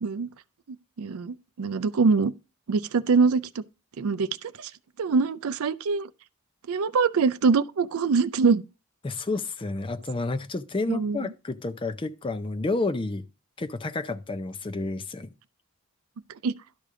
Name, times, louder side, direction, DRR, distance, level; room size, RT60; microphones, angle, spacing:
voice 1, 1.0-2.3 2.7-3.4 4.0-4.7 5.0-6.1 6.7-8.6 10.9-11.2 16.4-16.5, right 4 dB, 85° right, 0.5 m, -23 dB
voice 2, 9.0-13.3 13.6-15.3, left 3 dB, 25° left, 0.4 m, -30 dB
12.0 x 5.0 x 3.6 m
head